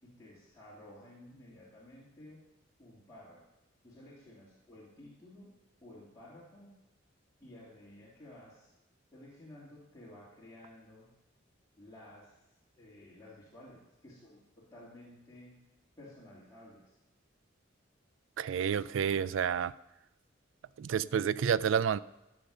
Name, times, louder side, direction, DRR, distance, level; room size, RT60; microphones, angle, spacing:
voice 1, 0.0-2.4 2.8-3.4 3.8-5.5 5.8-6.7 7.4-8.7 9.1-11.1 11.8-12.4 12.8-15.6 16.0-17.0, left 1 dB, 20° left, 2.8 m, -53 dB
voice 2, 18.4-19.7 20.8-22.0, right 7 dB, 80° right, 0.4 m, -29 dB
14.0 x 6.7 x 5.5 m
head